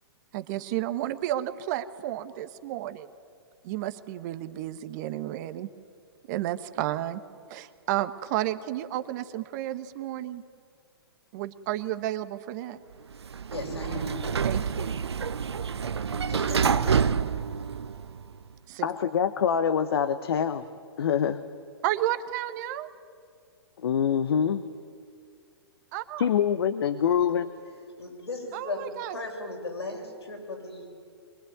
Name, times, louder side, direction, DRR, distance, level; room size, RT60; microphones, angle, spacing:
voice 1, 0.3-3.1 3.6-5.7 6.3-7.2 7.5-10.4 11.3-12.8 14.4-15.0 18.7-18.9 21.8-22.9 25.9-26.3 28.5-29.2, right 13 dB, 45° right, 11 dB, 1.3 m, -32 dB
Sliding door, 13.1-18.3, right 6 dB, 80° right, 0.9 m, -28 dB
voice 2, 13.5-14.2 16.3-17.1 28.0-30.9, left 1 dB, 90° left, 1 dB, 7.3 m, -36 dB
voice 3, 18.8-20.6 21.0-21.4 23.8-24.6 26.2-27.5, left 8 dB, 65° left, 11 dB, 1.1 m, -25 dB
23.5 x 22.0 x 9.4 m, 2.2 s
hypercardioid pair, 125°, 13 cm